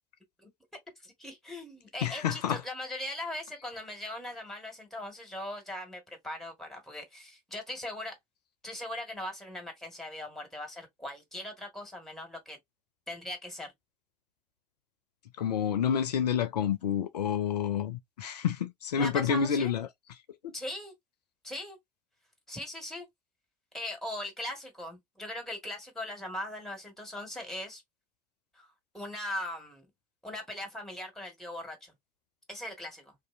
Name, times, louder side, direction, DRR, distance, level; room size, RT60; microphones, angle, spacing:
voice 1, 1.0-8.2 8.6-12.6 13.1-13.7 19.0-19.7 20.5-20.9 21.4-21.8 22.5-23.0 23.7-27.8 28.5-28.7 28.9-29.9 30.2-31.9 32.5-33.1, left 1 dB, ahead, 1.4 m, -40 dB
voice 2, 2.0-2.6 15.4-19.9 20.4-20.5, left 8 dB, 80° left, 0.4 m, -29 dB
2.5 x 2.5 x 2.4 m
figure-of-eight pair, 60°, 20 cm